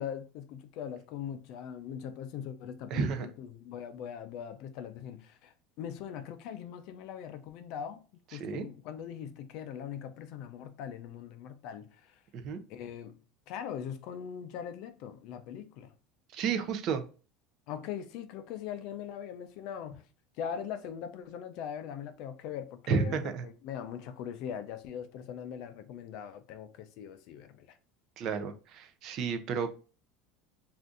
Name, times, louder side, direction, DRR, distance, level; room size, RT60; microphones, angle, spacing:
voice 1, 0.0-8.0 8.3-11.9 12.7-13.2 13.5-15.9 17.7-20.0 20.4-27.7, left 8 dB, 60° left, 0.4 m, -41 dB
voice 2, 2.9-3.3 8.3-8.7 12.3-12.6 16.3-17.0 22.9-23.4 28.2-29.8, right 6 dB, 45° right, 0.4 m, -32 dB
2.6 x 2.4 x 3.5 m
supercardioid pair, 145°, 0 cm